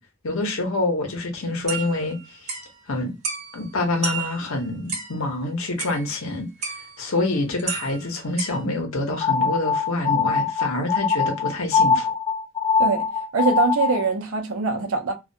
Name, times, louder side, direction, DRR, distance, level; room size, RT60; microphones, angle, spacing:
voice 1, 0.2-2.5 2.9-3.1 3.5-6.5 7.0-12.1, left 2 dB, 70° left, 0.7 m, -26 dB
sound 1, 1.7-2.7 3.2-3.7 4.0-5.2 5.8-6.3 6.6-7.1 7.6-8.6, right 5 dB, 30° right, 0.6 m, -32 dB
sound 2, 9.2-14.1, left 5 dB, 25° left, 0.4 m, -22 dB
voice 2, 13.3-15.1, right 4 dB, 75° right, 0.6 m, -23 dB
2.3 x 2.1 x 2.6 m
head